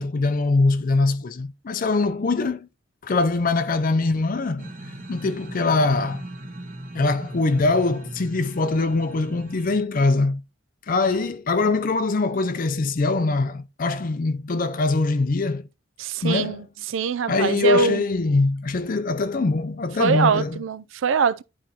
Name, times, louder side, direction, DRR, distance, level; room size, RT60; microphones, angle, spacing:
voice 1, 0.0-2.7 3.0-4.7 5.1-6.2 6.9-10.4 10.9-15.6 16.2-16.6 17.3-20.6, left 3 dB, 45° left, 0.5 m, -22 dB
sound 1, 4.6-9.8, right 1 dB, 40° right, 1.2 m, -39 dB
voice 2, 16.0-18.0 20.0-21.4, right 5 dB, 75° right, 0.4 m, -23 dB
11.0 x 4.3 x 2.9 m
head